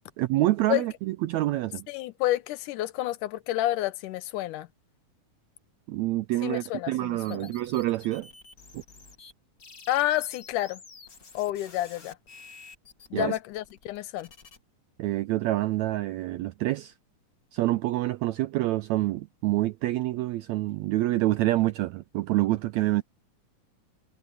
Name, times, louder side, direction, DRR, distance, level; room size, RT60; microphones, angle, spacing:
voice 1, 0.2-1.9 5.9-8.3 8.7-8.8 13.1-13.3 15.0-16.9 17.5-23.0, right 16 dB, 85° right, 1.6 m, -27 dB
voice 2, 1.9-4.7 6.4-7.5 9.9-10.8 11.3-12.2 13.1-14.3, left 15 dB, 80° left, 2.3 m, -29 dB
sound 1, 7.2-9.3 9.6-14.6, left 4 dB, 30° left, 2.2 m, -50 dB
omnidirectional pair, 3.7 m